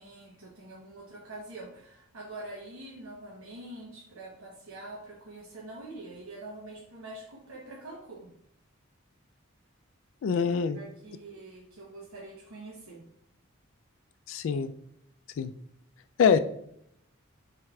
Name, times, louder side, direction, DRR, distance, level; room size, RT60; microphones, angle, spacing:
voice 1, 0.0-8.3 10.3-10.5 10.7-13.0, right 2 dB, 85° right, -3 dB, 1.0 m, -45 dB
voice 2, 10.2-10.8 14.3-14.7 15.4-15.5 16.2-16.4, left 6 dB, 65° left, 11 dB, 0.3 m, -24 dB
3.3 x 3.2 x 4.6 m, 0.72 s
head